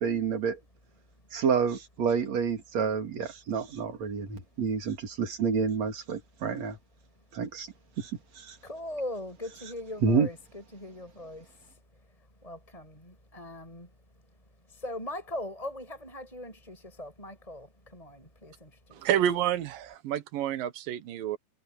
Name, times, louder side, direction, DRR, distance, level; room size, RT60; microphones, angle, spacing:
voice 1, 0.0-0.6 1.3-6.8 7.3-7.7 8.0-8.1 8.4-8.6 10.0-10.3, right 6 dB, 55° right, 3.6 m, -28 dB
voice 2, 8.6-11.7 12.4-13.9 14.7-19.0, left 1 dB, 10° left, 7.8 m, -40 dB
voice 3, 18.9-21.4, right 10 dB, 85° right, 3.0 m, -29 dB
omnidirectional pair, 3.9 m